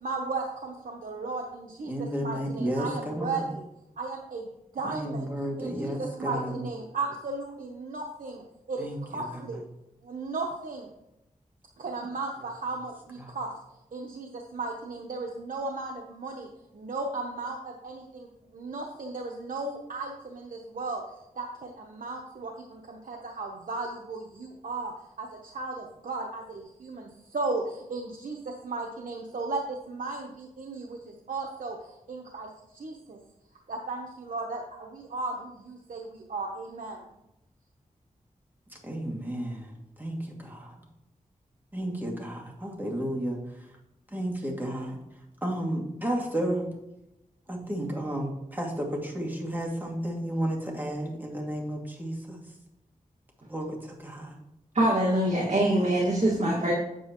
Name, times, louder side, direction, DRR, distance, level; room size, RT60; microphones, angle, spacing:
voice 1, 0.0-3.6 4.0-5.3 5.6-9.6 10.0-10.9 11.8-13.5 13.9-33.2 33.7-37.0, right 3 dB, 75° right, 0 dB, 0.9 m, -36 dB
voice 2, 1.9-3.4 4.8-6.5 8.8-9.0 38.8-39.7 40.0-40.7 41.7-43.4 44.1-45.0 45.4-46.6 47.5-52.4 53.5-54.4, right 1 dB, 15° right, -1 dB, 2.3 m, -32 dB
voice 3, 54.7-56.7, right 1 dB, 55° right, -4 dB, 1.9 m, -23 dB
8.6 x 8.0 x 3.0 m, 0.88 s
cardioid pair, 50°, 14 cm